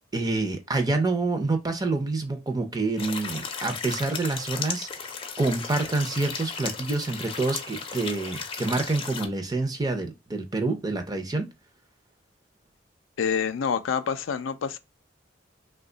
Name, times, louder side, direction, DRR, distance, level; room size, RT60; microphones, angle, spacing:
voice 1, 0.1-4.9 5.4-11.5, right 3 dB, 20° right, 0.5 m, -27 dB
sound 1, 3.0-9.3, left 5 dB, 30° left, 0.5 m, -35 dB
voice 2, 13.2-14.8, left 6 dB, 90° left, 0.4 m, -27 dB
2.8 x 2.2 x 3.8 m
head